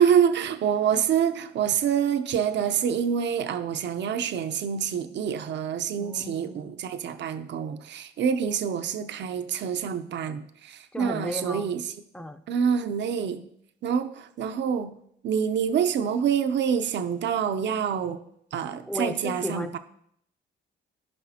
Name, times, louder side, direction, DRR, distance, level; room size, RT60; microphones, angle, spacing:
voice 1, 0.0-11.8 12.5-13.4 13.8-15.0 15.2-18.2 18.5-19.8, right 8 dB, 65° right, 0.7 m, -26 dB
voice 2, 6.0-6.7 10.9-11.7 12.1-12.4 18.9-19.8, left 1 dB, 5° left, 0.7 m, -34 dB
15.5 x 5.3 x 2.8 m
cardioid pair, 90°, 20 cm